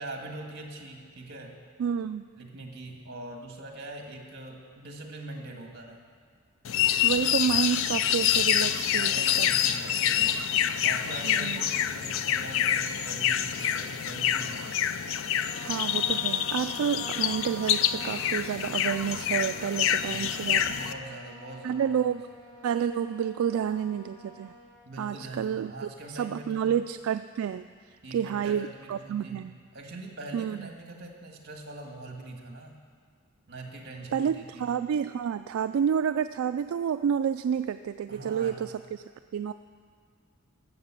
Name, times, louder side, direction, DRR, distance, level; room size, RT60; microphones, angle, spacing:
voice 1, 0.0-1.6 2.4-6.1 8.9-10.4 10.8-14.7 16.0-16.2 20.7-22.2 24.8-26.7 28.0-29.4 29.7-32.8 33.5-34.8 38.1-38.7, right 2 dB, 55° right, 2 dB, 1.7 m, -43 dB
voice 2, 1.8-2.2 7.0-9.5 11.2-11.6 15.6-20.8 21.6-22.3 22.6-24.5 25.0-27.7 28.1-29.5 30.3-30.7 34.1-39.0 39.3-39.5, right 8 dB, 75° right, 10 dB, 0.3 m, -29 dB
sound 1, 6.6-20.9, left 10 dB, 65° left, 0.4 m, -27 dB
Trumpet, 15.4-24.7, equal, 35° left, 3.9 m, -48 dB
13.0 x 7.5 x 7.3 m, 2.1 s
head